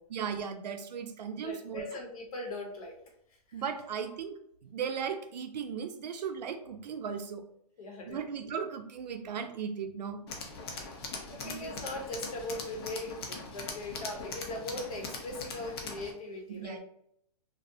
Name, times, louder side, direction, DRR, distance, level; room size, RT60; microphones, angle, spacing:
voice 1, 0.1-1.8 3.5-7.5 8.1-10.2 11.4-11.6 16.5-16.8, right 7 dB, 90° right, 7 dB, 0.5 m, -37 dB
voice 2, 1.3-2.9 7.8-8.2 10.6-10.9 11.3-16.8, left 2 dB, 60° left, 0 dB, 0.9 m, -40 dB
Tools, 10.3-16.1, left 3 dB, 40° left, 0.5 m, -41 dB
2.5 x 2.0 x 2.6 m, 0.70 s
hypercardioid pair, 160°, 21 cm